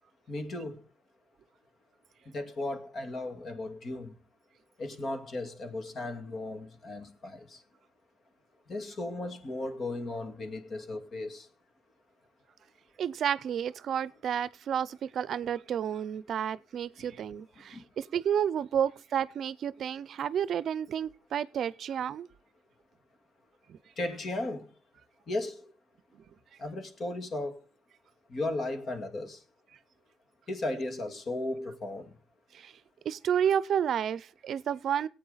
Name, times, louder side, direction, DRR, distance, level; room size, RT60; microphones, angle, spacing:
voice 1, 0.3-0.8 2.3-4.1 4.8-7.6 8.7-11.5 17.7-17.8 24.0-24.7 25.3-25.7 26.6-27.6 28.3-29.4 30.5-32.1, left 2 dB, 50° left, 2.2 m, -36 dB
voice 2, 13.0-22.3 23.7-23.8 26.1-26.2 32.5-32.7 33.0-35.1, right 9 dB, 65° right, 0.5 m, -31 dB
18.0 x 8.8 x 4.0 m
cardioid pair, 90°, 0 cm